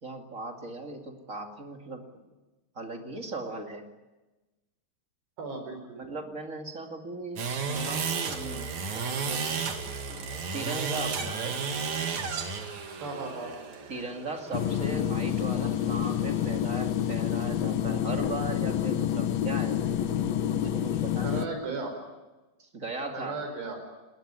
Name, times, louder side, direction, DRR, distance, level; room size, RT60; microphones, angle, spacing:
voice 1, 0.0-2.1 2.8-3.9 6.0-9.5 10.1-11.5 13.9-19.9 20.5-21.5 22.6-23.4, right 2 dB, 25° right, 3 dB, 1.9 m, -38 dB
voice 2, 5.4-6.0 13.0-13.5 21.2-22.0 23.1-23.8, right 3 dB, 85° right, 5 dB, 7.3 m, -35 dB
sound 1, 7.4-16.6, right 5 dB, 50° right, 3.2 m, -34 dB
sound 2, 14.5-21.5, left 10 dB, 85° left, 1.5 m, -28 dB
29.0 x 20.0 x 9.7 m, 1.2 s
omnidirectional pair, 4.7 m